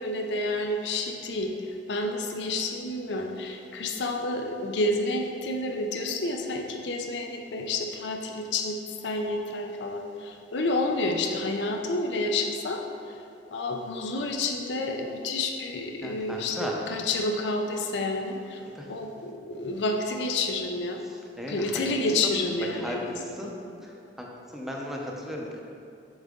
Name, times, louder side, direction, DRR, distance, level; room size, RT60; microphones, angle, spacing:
voice 1, 0.0-1.5 1.9-12.8 13.5-18.6 18.9-21.0 21.5-23.5, left 2 dB, 70° left, 3 dB, 0.5 m, -29 dB
voice 2, 16.0-16.8 18.8-18.9 21.4-21.8 22.2-22.4 22.8-23.5 23.8-23.9 24.2-24.3 24.5-25.6, left 1 dB, ahead, -2 dB, 0.7 m, -35 dB
7.1 x 3.9 x 3.7 m, 2.5 s
head